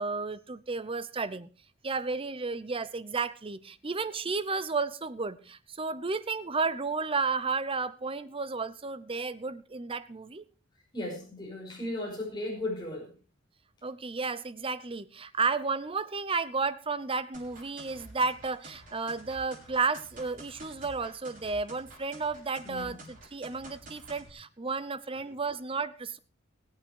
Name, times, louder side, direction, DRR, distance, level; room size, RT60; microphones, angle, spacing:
voice 1, 0.0-1.5 1.8-10.5 13.8-26.2, right 4 dB, 25° right, 14 dB, 0.7 m, -32 dB
voice 2, 10.9-13.1 22.6-22.9, left 1 dB, 20° left, -2 dB, 5.5 m, -36 dB
sound 1, 17.3-24.3, right 1 dB, 40° right, 5.9 m, -50 dB
20.0 x 8.7 x 4.6 m, 0.37 s
head